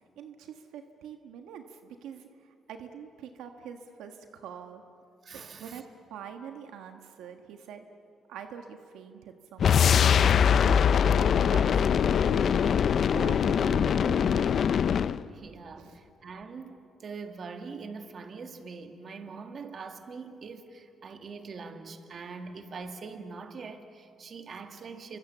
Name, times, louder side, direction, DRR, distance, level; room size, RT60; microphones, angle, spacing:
voice 1, 0.2-4.8 5.3-7.8 8.3-9.9 10.7-12.6 13.0-14.6 15.8-16.0, right 8 dB, 90° right, 1.4 m, -44 dB
voice 2, 5.2-5.8 15.3-25.2, right 4 dB, 50° right, 1.9 m, -43 dB
sound 1, 9.6-15.2, left 8 dB, 60° left, 0.5 m, -22 dB
28.0 x 25.0 x 7.3 m
cardioid pair, 90°, 0 cm